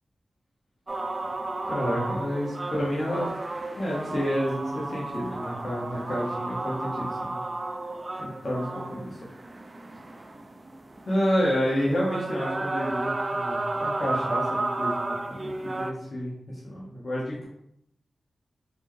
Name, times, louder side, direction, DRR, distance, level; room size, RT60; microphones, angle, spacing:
sound 1, 0.9-15.9, right 2 dB, 35° right, 0.4 m, -33 dB
voice 1, 1.6-3.3 3.8-7.4 8.2-9.1 11.1-16.3 16.6-17.4, equal, 60° left, -6 dB, 1.0 m, -29 dB
4.3 x 2.2 x 3.0 m, 0.76 s
cardioid pair, 50°, 0 cm